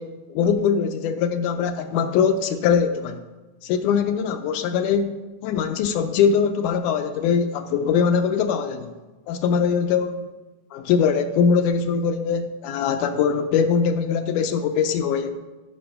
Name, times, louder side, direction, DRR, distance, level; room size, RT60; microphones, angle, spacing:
voice 1, 0.0-3.2 3.6-5.2 5.4-8.9 9.3-10.2 10.7-15.3, left 6 dB, 80° left, 7 dB, 1.9 m, -22 dB
11.5 x 5.9 x 5.7 m, 1.2 s
omnidirectional pair, 3.8 m